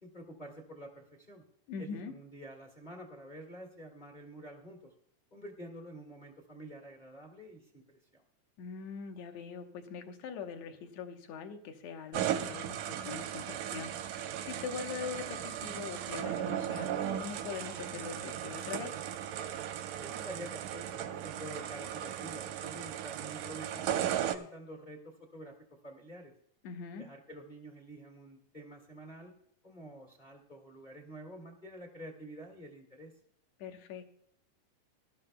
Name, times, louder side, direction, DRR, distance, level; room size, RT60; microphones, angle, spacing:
voice 1, 0.0-1.4 1.8-4.9 5.3-8.2 20.0-25.6 25.8-26.3 27.0-29.3 29.6-33.1, right 1 dB, 20° left, 2 dB, 1.1 m, -48 dB
voice 2, 1.7-2.1 8.6-16.9 17.2-18.9 26.6-27.1 33.6-34.1, left 6 dB, 65° left, 6 dB, 2.1 m, -42 dB
sound 1, 12.1-24.4, right 10 dB, 90° right, 2.2 m, -36 dB
19.5 x 12.0 x 2.2 m, 0.67 s
omnidirectional pair, 3.6 m